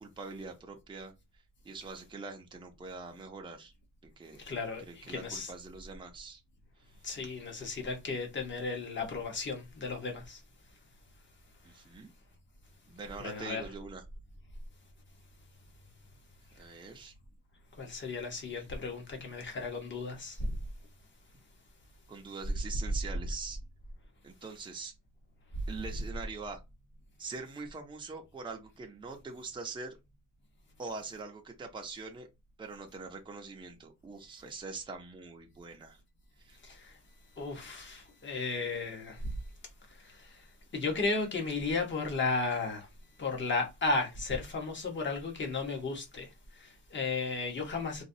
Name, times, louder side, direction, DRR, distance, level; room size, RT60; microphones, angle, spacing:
voice 1, 0.0-1.1 1.6-3.7 4.2-4.4 4.8-6.4 11.6-12.1 12.9-14.0 16.6-17.1 18.6-18.7 22.1-23.6 24.2-24.9 25.7-26.6 27.2-30.0 30.8-32.3 32.6-36.0 36.4-36.6, right 4 dB, 15° right, 0.6 m, -43 dB
voice 2, 4.4-5.5 7.0-10.4 13.2-13.6 17.8-20.5 36.6-37.0 37.4-39.3 40.0-40.5 40.7-42.9 43.2-48.0, left 3 dB, 35° left, 1.0 m, -34 dB
4.0 x 2.3 x 2.7 m
wide cardioid pair, 165°, 34 cm